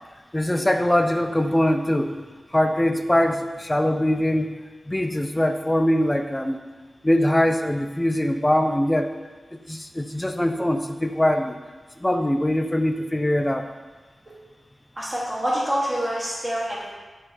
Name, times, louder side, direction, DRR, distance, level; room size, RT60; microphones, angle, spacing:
voice 1, 0.3-2.1 2.5-4.5 4.9-6.6 7.0-9.1 9.5-11.6 12.0-13.7, left 1 dB, 15° left, 6 dB, 0.4 m, -22 dB
voice 2, 15.0-16.9, equal, 30° right, -7 dB, 1.2 m, -26 dB
8.9 x 3.3 x 4.0 m, 1.3 s
wide cardioid pair, 90°, 0 cm